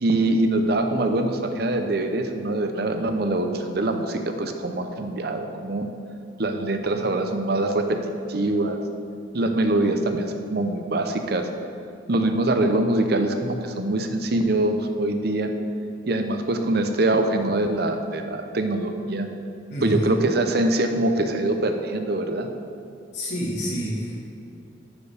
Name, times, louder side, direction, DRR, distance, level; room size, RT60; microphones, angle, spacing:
voice 1, 0.0-5.9 6.4-8.0 8.3-8.8 9.3-11.5 12.1-15.5 16.1-19.3 19.8-22.5, right 2 dB, 55° right, 6 dB, 0.7 m, -23 dB
voice 2, 19.7-20.2 23.1-24.2, equal, 65° left, -6 dB, 2.1 m, -28 dB
11.5 x 6.9 x 3.4 m, 2.7 s
head